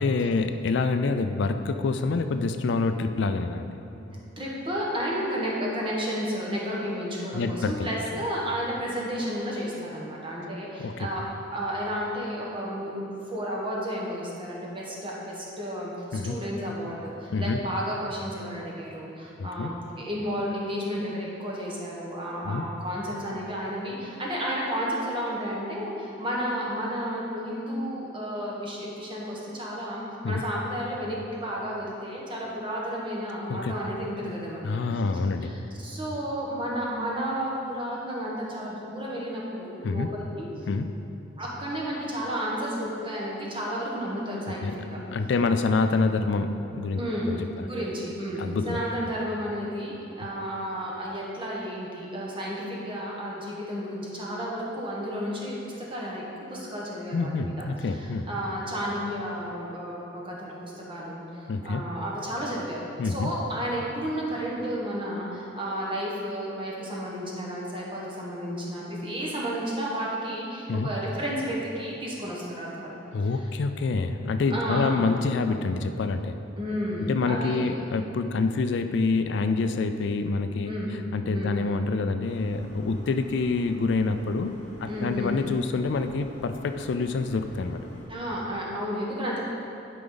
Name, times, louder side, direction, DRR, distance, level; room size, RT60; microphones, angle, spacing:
voice 1, 0.0-3.7 7.3-7.9 10.8-11.1 16.1-16.3 17.3-17.6 19.4-19.7 22.4-22.6 30.2-30.4 33.5-33.7 34.6-35.6 39.8-40.1 40.7-40.9 44.6-44.7 45.1-47.0 47.3-47.7 48.4-48.8 57.1-58.3 61.5-61.8 63.0-63.3 70.7-70.9 73.1-76.4 77.1-80.7 81.1-87.8, left 3 dB, 65° left, 8 dB, 0.4 m, -27 dB
voice 2, 4.4-11.2 11.5-34.8 35.4-40.5 41.4-45.0 47.0-56.2 56.5-57.5 57.8-73.0 73.2-73.4 74.5-75.0 76.6-77.8 80.6-80.9 81.3-81.5 84.9-85.4 88.1-89.5, equal, 25° right, -4 dB, 1.3 m, -32 dB
sound 1, 82.2-88.1, equal, 70° right, 1.8 m, -46 dB
11.0 x 5.0 x 3.9 m, 2.9 s
head